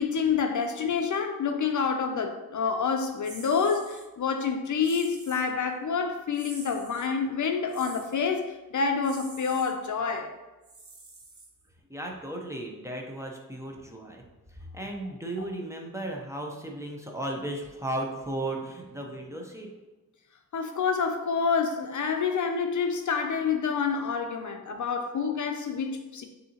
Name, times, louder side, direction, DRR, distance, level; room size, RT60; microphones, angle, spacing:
voice 1, 0.0-10.3 20.5-26.3, left 5 dB, 55° left, 0.5 m, -28 dB
sound 1, 3.2-4.1 4.8-5.5 6.3-7.1 7.7-8.2 9.0-9.7 10.6-11.8, right 2 dB, 40° right, 0.9 m, -47 dB
voice 2, 11.9-14.2 14.7-19.7, right 1 dB, 10° right, 0.7 m, -35 dB
6.3 x 2.8 x 2.8 m
wide cardioid pair, 80°, 35 cm